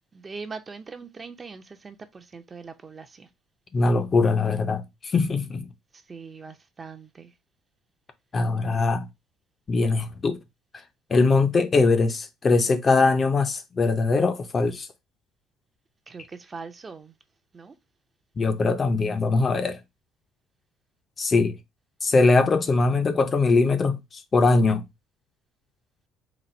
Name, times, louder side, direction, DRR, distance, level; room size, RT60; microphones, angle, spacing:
voice 1, 0.1-3.3 5.9-7.3 16.1-17.1 17.5-17.7, right 4 dB, 25° right, 0.5 m, -41 dB
voice 2, 3.7-5.7 8.3-9.1 9.7-10.4 11.1-14.9 18.4-19.8 21.2-21.6 22.0-24.8, left 3 dB, 30° left, 0.5 m, -21 dB
4.0 x 2.3 x 4.2 m
cardioid pair, 130°, 0 cm